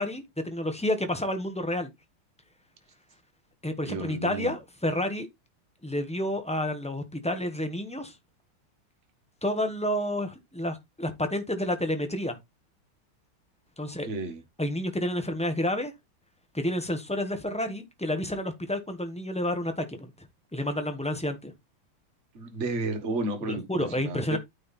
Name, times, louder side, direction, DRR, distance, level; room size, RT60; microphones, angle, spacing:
voice 1, 0.0-1.9 3.6-5.3 5.8-8.1 9.4-12.4 13.8-14.1 14.6-15.9 16.5-20.1 20.5-21.5 23.5-24.4, left 1 dB, 5° left, 0.5 m, -30 dB
voice 2, 3.8-4.6 13.8-14.4 22.3-24.4, right 2 dB, 35° right, 1.6 m, -32 dB
9.1 x 4.3 x 4.1 m
omnidirectional pair, 2.4 m